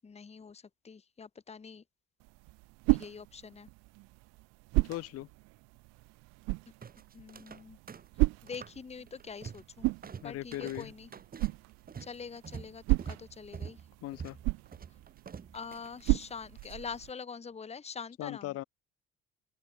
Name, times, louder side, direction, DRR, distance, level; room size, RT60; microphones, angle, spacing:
voice 1, 0.0-1.8 2.9-3.7 7.1-7.8 8.4-9.9 10.2-11.1 12.0-13.8 15.5-18.6, left 5 dB, 20° left, 1.0 m, -44 dB
sound 1, 2.2-17.1, right 25 dB, 60° right, 0.4 m, -35 dB
voice 2, 4.8-5.3 10.2-10.9 14.0-14.4 18.2-18.6, left 16 dB, 50° left, 0.7 m, -38 dB
sound 2, 6.8-7.6 7.9-8.8 9.1-9.7 10.0-16.7, right 6 dB, 30° right, 1.2 m, -46 dB
open air
hypercardioid pair, 50°, 31 cm